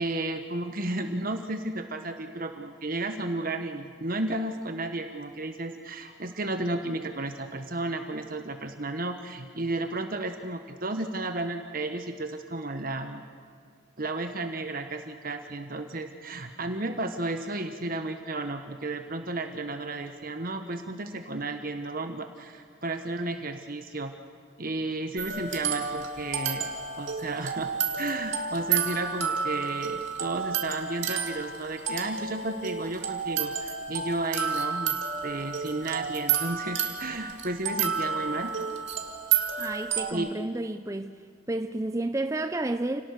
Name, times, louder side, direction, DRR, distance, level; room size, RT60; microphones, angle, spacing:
voice 1, 0.0-13.2 14.0-24.1 24.6-26.7 27.0-27.7 28.0-38.5 40.1-40.3, right 2 dB, 45° right, 1.3 m, -33 dB
sound 1, 25.2-40.1, right 6 dB, 65° right, 2.3 m, -31 dB
voice 2, 39.6-41.2 41.5-43.0, right 2 dB, 15° right, 0.5 m, -31 dB
29.0 x 18.5 x 6.7 m
head